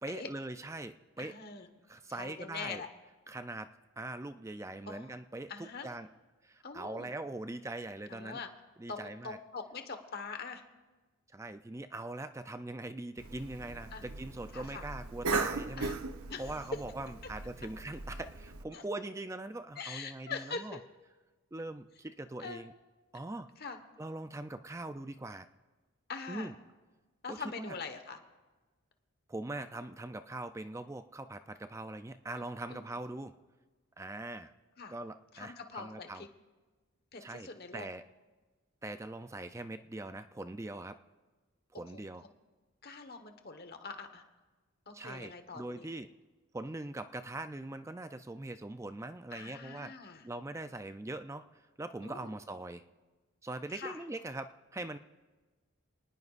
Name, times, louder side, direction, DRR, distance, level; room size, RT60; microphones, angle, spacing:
voice 1, 0.0-1.4 1.9-2.8 3.3-3.7 4.0-6.1 6.4-8.4 8.8-9.4 11.3-15.9 16.4-20.8 21.5-22.7 23.1-23.5 24.0-25.5 26.3-26.5 27.3-27.8 29.3-33.3 34.0-34.5 34.9-36.3 37.2-38.0 38.8-41.0 41.7-42.2 44.9-46.1 46.5-49.9 50.2-51.5 51.8-52.9 53.4-55.0, right 2 dB, 15° right, 10 dB, 0.4 m, -42 dB
voice 2, 1.2-1.7 2.1-2.9 4.9-5.1 5.5-5.9 6.6-7.1 8.1-8.5 8.9-10.6 13.9-14.0 14.5-14.8 15.8-16.0 16.3-16.6 18.7-18.8 19.8-20.8 22.4-22.6 23.6-23.8 26.1-26.5 27.2-28.2 32.3-32.4 32.7-32.8 34.8-34.9 35.3-36.3 37.1-37.9 41.7-42.0 42.8-44.2 44.9-45.9 49.3-50.2 52.0-52.3 53.7-54.0, left 4 dB, 45° left, 7 dB, 1.3 m, -43 dB
Cough, 13.2-18.6, right 3 dB, 80° right, 0.9 m, -38 dB
28.0 x 19.0 x 2.5 m, 1.3 s
head